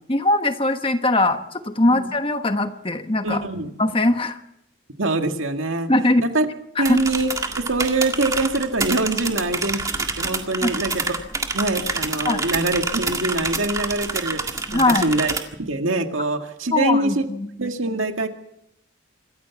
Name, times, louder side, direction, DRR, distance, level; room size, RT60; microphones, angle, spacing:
voice 1, 0.1-3.5 3.8-4.4 5.9-6.2 6.8-7.0 10.6-10.8 12.2-12.4 14.7-15.1 16.7-17.5, left 2 dB, 25° left, 8 dB, 1.2 m, -21 dB
voice 2, 3.2-3.7 5.0-5.9 6.2-6.5 6.8-11.2 11.5-15.3 15.6-17.3 17.6-18.3, right 2 dB, 85° right, 5 dB, 2.0 m, -24 dB
sound 1, 6.9-15.4, right 3 dB, 15° right, 1.8 m, -27 dB
26.5 x 14.5 x 7.2 m, 0.78 s
head